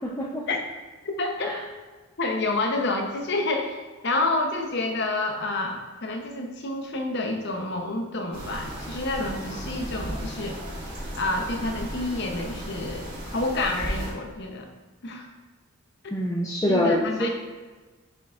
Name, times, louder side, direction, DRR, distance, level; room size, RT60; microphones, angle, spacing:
voice 1, 0.0-0.5 1.4-1.6 16.1-17.3, left 1 dB, 15° left, -4 dB, 0.5 m, -25 dB
voice 2, 1.0-1.5 2.2-3.8 4.0-10.6 11.1-14.7 15.0-15.3 16.0-16.2 16.7-17.3, left 2 dB, 50° left, 3 dB, 0.8 m, -28 dB
sound 1, 8.3-14.1, equal, 40° right, 1.9 m, -35 dB
9.4 x 4.8 x 2.4 m, 1.3 s
head